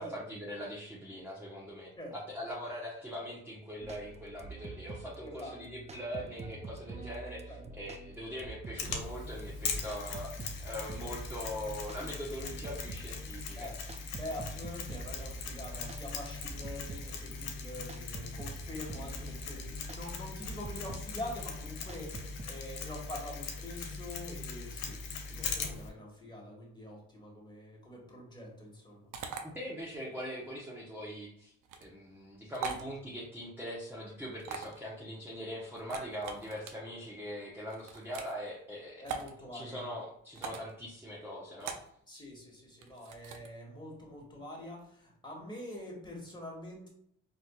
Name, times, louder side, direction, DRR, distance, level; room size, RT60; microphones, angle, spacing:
voice 1, 0.0-13.7 29.4-31.5 31.8-39.1 39.5-41.7, equal, 5° right, -6 dB, 0.9 m, -42 dB
sound 1, 3.8-22.4, right 4 dB, 20° right, 0.3 m, -47 dB
voice 2, 5.2-5.9 7.5-7.7 13.5-13.7 14.2-25.0 25.3-29.1 39.0-39.8 42.1-46.9, left 1 dB, 15° left, -2 dB, 1.4 m, -45 dB
Mechanisms, 8.8-25.9, left 5 dB, 85° left, 0.7 m, -40 dB
sound 2, 29.1-29.4 31.6-31.9 32.5-32.9 34.4-34.8 35.8-36.7 37.7-38.3 39.1-39.3 40.3-40.7 41.6-41.9 42.8-43.5, right 6 dB, 75° right, 0.6 m, -40 dB
4.3 x 2.5 x 2.3 m, 0.69 s
supercardioid pair, 70°, 32 cm